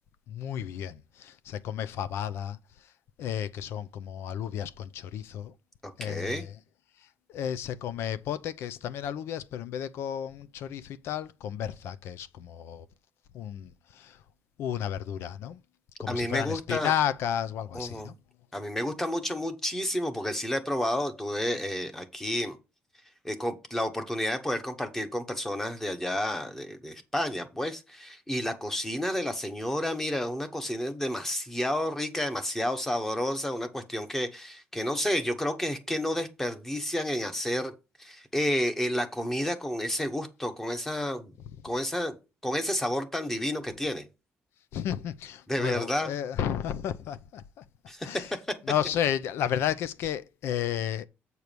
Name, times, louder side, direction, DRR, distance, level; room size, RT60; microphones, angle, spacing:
voice 1, 0.3-2.6 3.2-5.5 6.0-6.6 7.3-12.9 13.3-14.2 14.6-15.6 16.0-18.1 44.7-47.6 48.0-48.3 48.6-51.1, left 10 dB, 70° left, 0.7 m, -32 dB
voice 2, 5.8-6.4 16.1-16.9 17.7-18.1 18.5-22.6 23.2-37.7 38.0-41.3 41.6-42.2 42.4-44.0 45.5-46.1 47.9-48.2, left 1 dB, 10° left, 1.0 m, -30 dB
8.2 x 4.7 x 5.2 m
cardioid pair, 175°, 4 cm